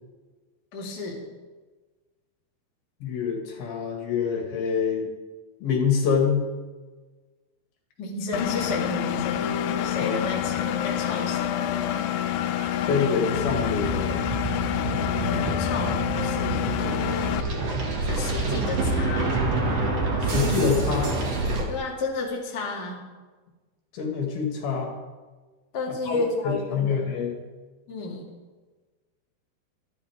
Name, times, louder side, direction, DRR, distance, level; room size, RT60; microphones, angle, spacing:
voice 1, 0.7-1.3 8.0-9.5 9.8-11.5 15.1-16.7 18.0-19.4 21.7-23.0 25.7-27.2 27.9-28.3, left 3 dB, 30° left, -2 dB, 2.0 m, -32 dB
voice 2, 3.0-5.1 5.6-6.5 10.0-10.1 12.9-14.3 20.2-21.1 23.9-24.9 26.1-26.2 26.4-27.4, left 6 dB, 65° left, 0 dB, 3.8 m, -25 dB
Engine, 8.3-17.4, left 12 dB, 90° left, 2.9 m, -28 dB
Wind instrument woodwind instrument, 9.3-13.1 13.9-17.6, equal, 5° left, 6.0 m, -38 dB
sound 1, 13.3-21.6, right 2 dB, 45° right, 2.7 m, -27 dB
25.0 x 11.0 x 3.6 m, 1.3 s
omnidirectional pair, 5.0 m